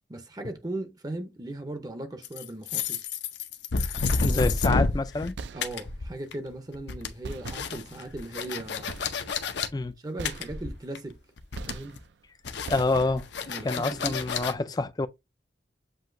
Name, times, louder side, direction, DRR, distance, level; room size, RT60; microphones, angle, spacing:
voice 1, 0.1-3.1 4.0-4.4 5.5-9.0 10.0-11.2 11.7-12.0 13.5-14.2, right 2 dB, 20° right, 0.6 m, -38 dB
sound 1, 2.2-5.3 5.6-6.5 6.7-9.7 10.3-11.1 11.4-12.0 12.5-14.5, left 4 dB, 80° left, 0.7 m, -30 dB
voice 2, 4.2-5.4 9.7-9.9 12.7-13.3 13.6-15.1, left 3 dB, 20° left, 0.3 m, -27 dB
sound 2, 5.4-6.1 7.2-8.2 8.9-9.5 10.2-11.0 11.5-12.3 12.7-13.5, right 4 dB, 75° right, 0.4 m, -41 dB
7.6 x 2.7 x 2.6 m
head